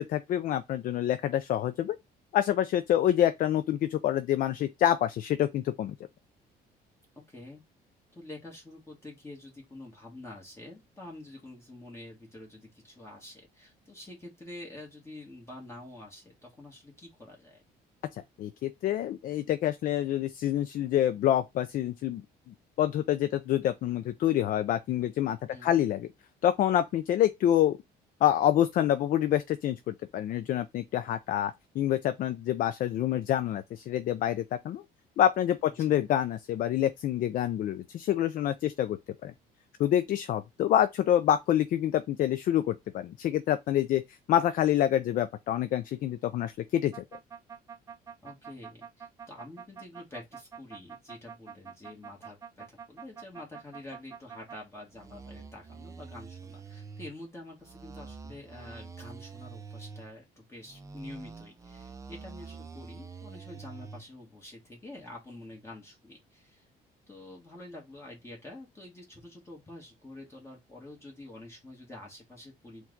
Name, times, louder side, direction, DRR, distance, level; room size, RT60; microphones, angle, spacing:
voice 1, 0.0-2.0 2.3-5.9 18.4-26.1 26.4-27.8 28.2-34.8 35.2-39.3 39.8-46.9, left 11 dB, 55° left, 0.4 m, -27 dB
voice 2, 7.3-7.6 8.1-17.6 25.5-25.8 35.8-36.1 48.2-66.7 67.1-72.9, left 2 dB, 15° left, 1.5 m, -47 dB
sound 1, 46.9-54.6 54.9-57.1 57.6-60.1 60.6-64.0, right 5 dB, 20° right, 0.4 m, -46 dB
4.5 x 2.3 x 3.7 m
cardioid pair, 110°, 17 cm